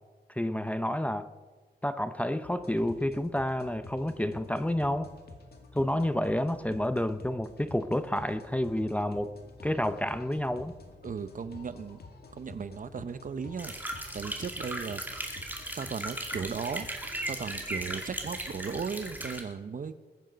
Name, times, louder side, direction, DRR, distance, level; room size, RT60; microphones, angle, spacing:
voice 1, 0.3-1.3 1.8-5.1 5.7-10.7, left 1 dB, 5° left, 11 dB, 0.6 m, -30 dB
sound 1, 2.4-19.3, left 3 dB, 60° left, 2.3 m, -50 dB
voice 2, 11.0-12.0 12.3-15.3 15.8-16.9 17.3-19.9, right 6 dB, 45° right, 13 dB, 0.8 m, -36 dB
sound 2, 13.6-19.4, right 1 dB, 10° right, 2.3 m, -37 dB
21.5 x 9.1 x 5.2 m, 1.4 s
wide cardioid pair, 115°, 18 cm